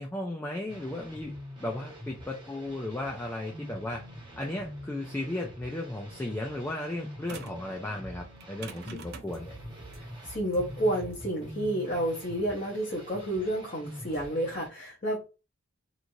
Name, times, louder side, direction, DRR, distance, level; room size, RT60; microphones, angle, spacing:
voice 1, 0.0-1.3 1.6-4.0 4.4-9.5, left 1 dB, 10° left, 1 dB, 0.3 m, -35 dB
sound 1, 0.7-14.7, equal, 25° right, 0.9 m, -45 dB
sound 2, 7.3-7.7 8.4-13.3, right 5 dB, 50° right, 0.5 m, -47 dB
sound 3, 9.3-10.0 10.2-10.7 11.0-11.2 14.1-14.3, right 2 dB, 90° right, 0.9 m, -48 dB
voice 2, 10.0-15.3, right 1 dB, 35° left, -4 dB, 0.7 m, -30 dB
3.0 x 2.5 x 2.6 m, 0.30 s
head